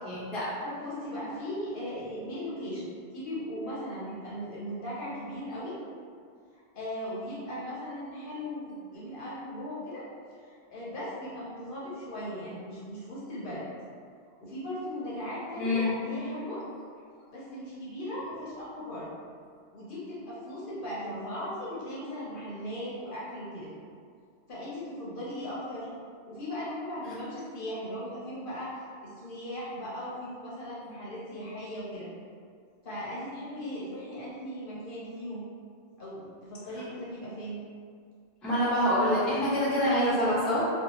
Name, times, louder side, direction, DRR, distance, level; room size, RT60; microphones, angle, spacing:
voice 1, 0.0-0.5 15.6-15.8 38.4-40.7, equal, ahead, -10 dB, 0.5 m, -26 dB
voice 2, 0.6-2.9 3.1-5.8 6.5-10.1 10.5-13.7 14.4-16.6 17.3-19.1 19.7-23.7 24.5-25.9 26.3-32.1 32.8-35.4 36.0-37.6, equal, 55° left, -8 dB, 0.8 m, -38 dB
2.7 x 2.3 x 2.7 m, 2.2 s
omnidirectional pair, 1.1 m